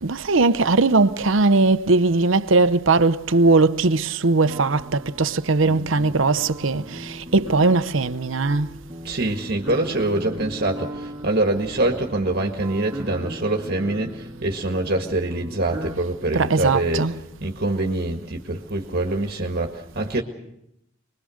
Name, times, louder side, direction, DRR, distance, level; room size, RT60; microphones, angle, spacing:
voice 1, 0.0-8.7 16.3-17.2, right 3 dB, 70° right, 0.8 m, -19 dB
sound 1, 4.4-16.0, right 1 dB, 20° right, 2.0 m, -37 dB
voice 2, 9.0-17.1 17.4-20.2, right 2 dB, 50° right, 1.8 m, -24 dB
25.0 x 21.0 x 6.5 m
head